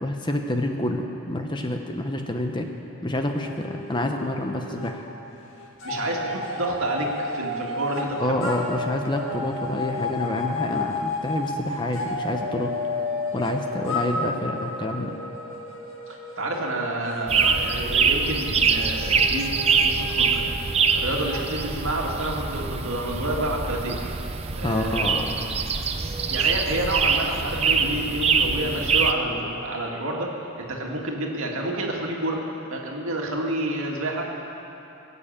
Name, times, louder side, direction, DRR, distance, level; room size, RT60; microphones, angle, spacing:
voice 1, 0.0-2.7 3.0-5.1 8.2-12.7 13.3-15.2 24.6-25.3, left 1 dB, 20° left, 4 dB, 0.8 m, -28 dB
sound 1, 3.3-5.0 5.2-22.3, left 2 dB, 65° left, 2.2 m, -32 dB
voice 2, 5.8-8.4 16.4-20.6 20.9-24.0 24.6-25.3 26.3-30.3 30.6-32.4 32.7-34.3, right 1 dB, 65° right, -1 dB, 2.1 m, -29 dB
sound 2, 17.3-29.1, right 5 dB, 25° right, 0.6 m, -24 dB
20.5 x 7.0 x 8.8 m, 3.0 s
head